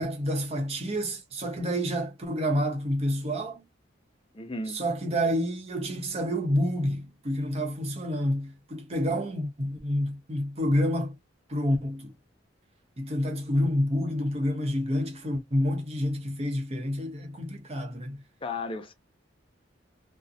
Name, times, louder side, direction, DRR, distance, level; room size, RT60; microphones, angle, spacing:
voice 1, 0.0-3.6 4.7-11.1 11.5-12.1 13.0-18.2, equal, 35° right, 0.7 m, -28 dB
voice 2, 4.3-4.8 18.4-18.9, left 3 dB, 30° left, 0.5 m, -34 dB
2.7 x 2.0 x 2.4 m
head